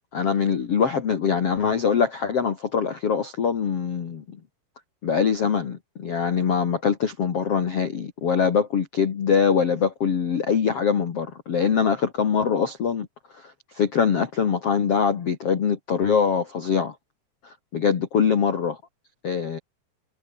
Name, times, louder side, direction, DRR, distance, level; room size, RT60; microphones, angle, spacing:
voice 1, 0.1-4.4 5.0-13.1 13.3-16.9 17.4-18.8 19.2-19.6, left 6 dB, 55° left, 1.6 m, -23 dB
omnidirectional pair, 5.6 m